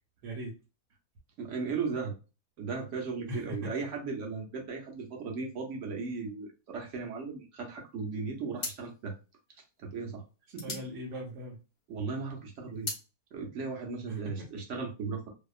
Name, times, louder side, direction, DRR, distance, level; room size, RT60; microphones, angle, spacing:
voice 1, 0.2-0.5 3.3-3.7 10.6-11.6 14.1-14.5, equal, 85° right, -2 dB, 1.3 m, -40 dB
voice 2, 1.4-2.1 2.6-9.1 9.8-10.2 10.5-10.8 11.9-12.9 13.3-15.3, right 4 dB, 60° right, 1 dB, 0.9 m, -36 dB
sound 1, 7.9-8.1 8.5-11.9 12.3-13.1, left 3 dB, 60° left, 0.4 m, -41 dB
2.7 x 2.2 x 2.4 m, 0.30 s
omnidirectional pair, 1.7 m